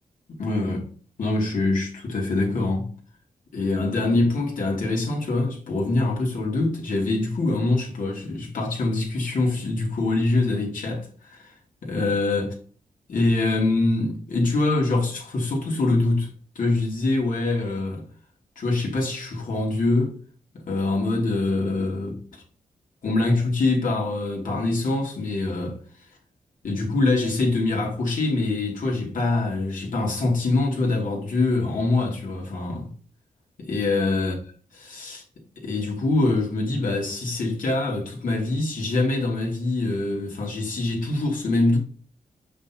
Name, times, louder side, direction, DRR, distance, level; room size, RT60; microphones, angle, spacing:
voice 1, 0.3-0.9 1.2-2.9 3.5-11.5 11.8-12.5 13.1-16.3 16.5-18.0 18.6-20.2 20.7-22.4 23.0-25.8 26.6-32.9 33.6-34.3 34.7-35.2 35.6-41.8, left 2 dB, 75° left, 2.6 m, -24 dB
6.2 x 6.0 x 2.9 m
cardioid pair, 70°, 14 cm